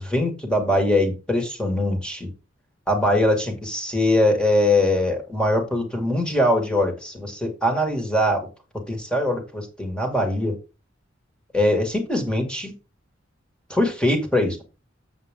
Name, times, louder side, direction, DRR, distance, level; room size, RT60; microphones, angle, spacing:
voice 1, 0.0-2.3 2.9-8.5 8.9-10.6 11.5-12.7 13.7-14.6, left 1 dB, 5° left, 3 dB, 2.2 m, -22 dB
8.0 x 7.5 x 3.7 m, 0.30 s
head